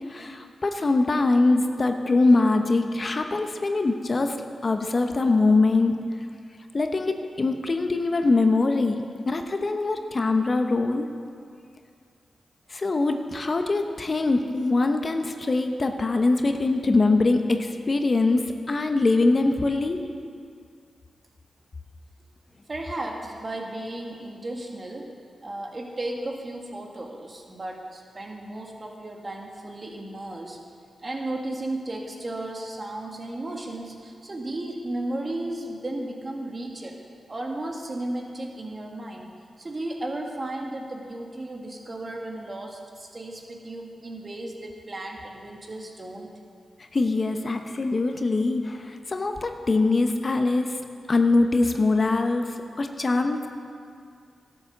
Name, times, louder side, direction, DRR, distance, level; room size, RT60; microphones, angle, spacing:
voice 1, 0.1-6.1 6.7-11.1 12.7-20.1 46.9-53.5, left 3 dB, 45° left, 6 dB, 0.9 m, -23 dB
voice 2, 22.7-30.6 31.0-39.3 39.6-46.3, right 1 dB, 40° right, 1 dB, 1.8 m, -34 dB
12.0 x 7.3 x 6.7 m, 2.3 s
supercardioid pair, 45°, 0 cm